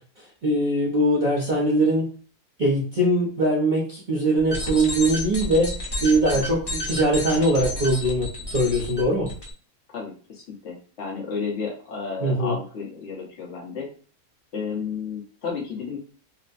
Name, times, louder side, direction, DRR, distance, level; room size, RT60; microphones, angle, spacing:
voice 1, 0.4-2.1 2.6-9.3 12.2-12.6, right 1 dB, 40° right, -6 dB, 0.8 m, -22 dB
sound 1, 4.4-9.5, left 1 dB, 20° left, 0.8 m, -31 dB
voice 2, 9.9-13.9 14.5-16.0, left 5 dB, 50° left, -2 dB, 1.3 m, -32 dB
4.0 x 2.2 x 2.6 m, 0.40 s
omnidirectional pair, 1.6 m